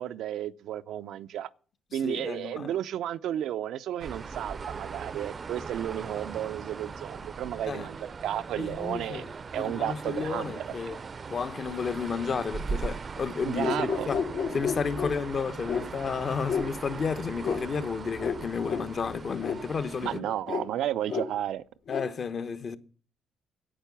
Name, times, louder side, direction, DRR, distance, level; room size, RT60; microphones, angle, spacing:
voice 1, 0.0-1.5 1.9-8.0 8.2-9.2 9.5-10.7 13.4-14.1 20.0-21.6, right 11 dB, 80° right, 0.6 m, -32 dB
voice 2, 2.0-2.7 7.7-7.9 8.6-9.3 9.5-11.0 11.3-14.2 14.5-20.3 21.9-22.8, left 5 dB, 45° left, 1.0 m, -32 dB
sound 1, 4.0-20.2, right 5 dB, 40° right, 0.6 m, -39 dB
sound 2, 13.6-15.1 15.7-15.9 16.5-16.7 17.4-17.6 18.2-18.4 18.7-18.8 19.4-19.6 20.5-20.7 21.1-21.3 21.9-22.0, left 6 dB, 85° left, 2.6 m, -30 dB
10.0 x 8.2 x 7.2 m
cardioid pair, 90°, 0 cm